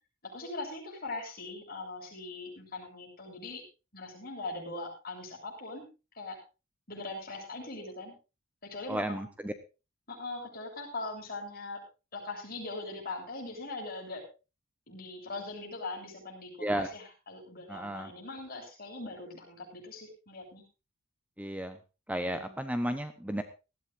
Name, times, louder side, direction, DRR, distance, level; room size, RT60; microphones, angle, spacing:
voice 1, 0.2-3.6 3.9-5.9 6.1-6.4 6.9-8.1 8.6-9.3 10.1-11.8 12.1-14.3 14.9-20.6 22.1-22.6, left 2 dB, 45° left, 0 dB, 7.5 m, -41 dB
voice 2, 8.9-9.2 9.4-9.5 16.6-16.9 17.7-18.1 21.4-21.7 22.1-23.4, right 1 dB, 5° right, 9 dB, 1.0 m, -33 dB
19.5 x 15.0 x 2.7 m, 0.31 s
head